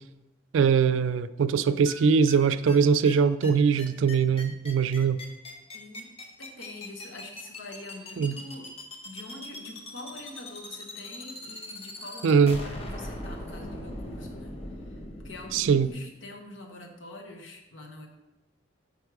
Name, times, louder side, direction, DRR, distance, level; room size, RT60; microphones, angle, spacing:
voice 1, 0.5-5.2 8.2-8.4 12.2-12.6 15.5-15.9, right 6 dB, 85° right, 13 dB, 0.3 m, -22 dB
sound 1, 1.8-1.9 2.3-2.4 2.7-2.8 3.0-3.1 3.4-3.5 3.8-15.9, left 1 dB, 30° left, 0.8 m, -40 dB
voice 2, 5.7-8.7 9.0-14.6 14.9-18.1, left 2 dB, 80° left, 2 dB, 1.0 m, -45 dB
5.3 x 4.7 x 4.7 m, 1.0 s
head